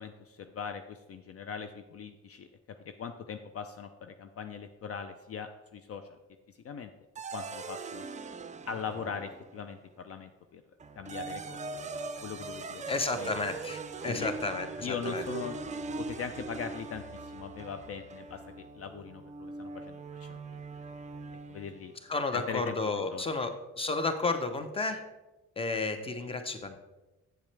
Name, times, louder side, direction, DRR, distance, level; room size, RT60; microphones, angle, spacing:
voice 1, 0.0-2.5 3.0-6.2 6.6-6.9 7.3-8.0 8.7-10.6 11.0-11.6 12.2-12.8 13.1-13.3 14.1-14.3 14.8-15.6 16.0-20.4 21.5-21.9 22.3-22.7 23.1-23.2, left 7 dB, 50° left, 8 dB, 0.5 m, -40 dB
sound 1, 7.1-9.7 10.8-21.9, right 4 dB, 25° right, 0.5 m, -41 dB
voice 2, 12.9-15.2 22.1-25.0 25.6-26.8, left 3 dB, 20° left, 8 dB, 0.8 m, -32 dB
7.9 x 7.1 x 3.3 m, 1.1 s
cardioid pair, 90°, 30 cm